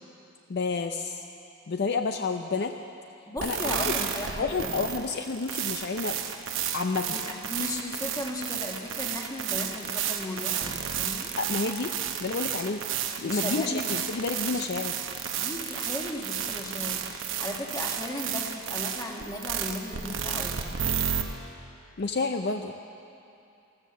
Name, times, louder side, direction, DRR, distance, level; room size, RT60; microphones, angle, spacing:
voice 1, 0.5-1.2 1.7-2.7 3.4-4.1 4.4-6.2 6.7-7.1 11.4-11.9 12.2-12.8 13.2-15.0 22.0-22.7, left 4 dB, 50° left, 6 dB, 0.5 m, -30 dB
voice 2, 3.3-4.8 7.1-11.3 13.2-14.0 14.5-14.6 15.4-20.7, left 1 dB, 15° left, 1 dB, 1.3 m, -36 dB
sound 1, 3.4-21.2, right 8 dB, 65° right, 0.9 m, -32 dB
14.0 x 13.5 x 6.8 m, 2.7 s
head